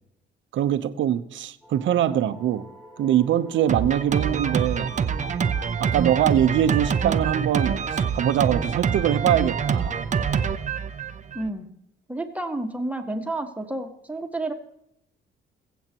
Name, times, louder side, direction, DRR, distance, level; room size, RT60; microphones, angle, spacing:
voice 1, 0.5-2.6 3.0-4.9 5.8-9.9, right 10 dB, 70° right, 10 dB, 0.9 m, -23 dB
sound 1, 1.6-10.5, equal, 20° left, 5.3 m, -48 dB
Drum kit, 3.7-11.5, right 6 dB, 40° right, 0.8 m, -25 dB
voice 2, 11.4-11.7 12.1-14.5, right 2 dB, 5° right, 4 dB, 1.7 m, -30 dB
22.0 x 8.1 x 3.0 m, 0.79 s
cardioid pair, 90°, 20 cm